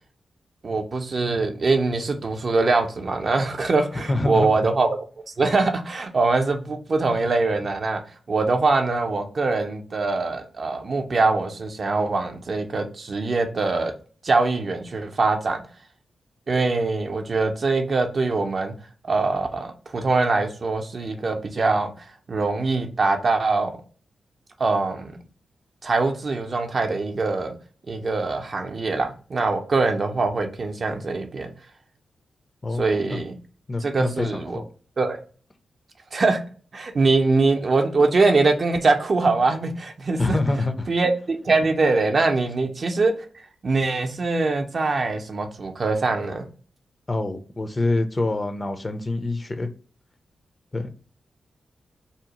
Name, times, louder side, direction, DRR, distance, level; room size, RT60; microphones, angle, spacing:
voice 1, 0.6-5.0 5.4-8.0 8.3-13.9 14.2-15.6 16.5-18.7 19.1-21.9 22.3-23.7 24.6-25.2 25.8-27.5 27.9-31.5 32.8-33.4 33.8-34.6 35.0-35.2 36.1-36.4 36.7-40.4 40.9-43.1 43.6-46.5, right 3 dB, 55° right, 0.5 m, -23 dB
voice 2, 4.1-4.5 32.6-32.8 33.1-33.2 33.7-34.6 40.2-40.9 47.1-49.7 50.7-50.9, left 2 dB, 35° left, 0.5 m, -25 dB
2.7 x 2.0 x 2.8 m
supercardioid pair, 45°, 0 cm